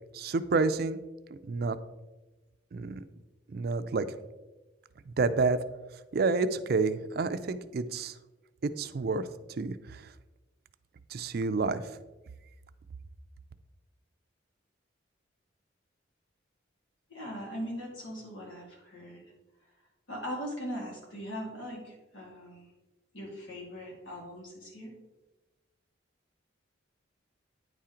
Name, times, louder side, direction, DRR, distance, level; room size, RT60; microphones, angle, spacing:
voice 1, 0.1-1.0 1.4-1.8 2.7-3.0 3.5-4.1 5.1-5.6 6.1-8.2 8.6-9.3 9.6-10.1 11.1-11.9, right 4 dB, 55° right, 12 dB, 0.4 m, -29 dB
voice 2, 17.1-19.2 20.1-22.7 23.1-24.9, equal, 85° left, -2 dB, 2.4 m, -40 dB
9.6 x 4.3 x 3.7 m, 1.1 s
head